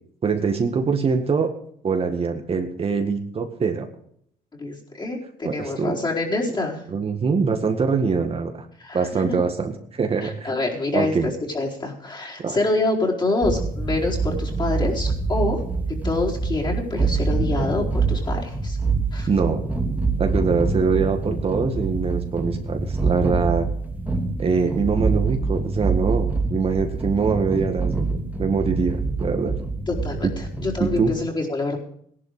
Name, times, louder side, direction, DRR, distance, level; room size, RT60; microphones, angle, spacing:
voice 1, 0.2-1.5 1.8-3.9 5.4-5.9 6.9-8.5 8.9-10.5 10.9-11.3 12.4-12.6 19.3-19.6 20.2-23.7 24.4-29.6 30.8-31.1, right 5 dB, 40° right, 5 dB, 1.8 m, -23 dB
voice 2, 4.6-6.8 8.8-9.3 10.2-15.6 16.0-18.8 19.1-19.3 29.9-31.8, left 2 dB, 30° left, -2 dB, 4.5 m, -26 dB
sound 1, 13.4-31.0, right 3 dB, 10° right, 3.0 m, -25 dB
17.5 x 11.5 x 5.0 m, 0.65 s
cardioid pair, 105°, 16 cm